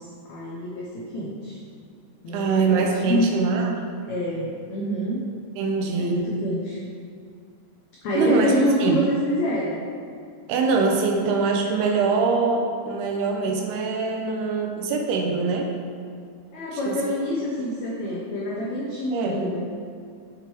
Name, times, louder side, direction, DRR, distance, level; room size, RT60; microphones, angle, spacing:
voice 1, 0.0-1.6 2.2-3.3 4.1-5.2 6.0-6.8 8.0-9.8 16.5-19.7, equal, 80° left, -5 dB, 1.6 m, -26 dB
voice 2, 2.3-3.8 5.6-6.2 8.2-8.5 8.8-9.0 10.5-15.7 16.9-17.0 19.1-19.4, right 4 dB, 80° right, 1 dB, 2.8 m, -23 dB
6.9 x 6.5 x 4.5 m, 2.2 s
omnidirectional pair, 4.6 m